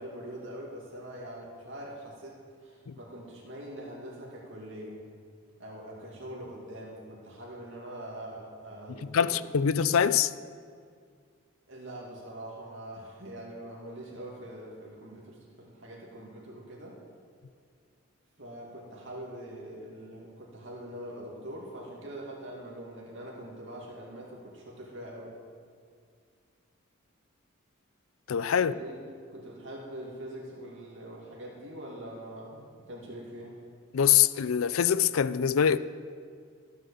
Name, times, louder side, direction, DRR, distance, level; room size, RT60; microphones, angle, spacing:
voice 1, 0.0-5.0 5.6-9.4 11.7-17.0 18.4-25.4 28.6-33.6, right 1 dB, 65° right, 2.5 m, -43 dB
voice 2, 9.1-10.3 28.3-28.7 33.9-35.8, left 8 dB, 90° left, 0.5 m, -24 dB
14.0 x 7.7 x 7.1 m
head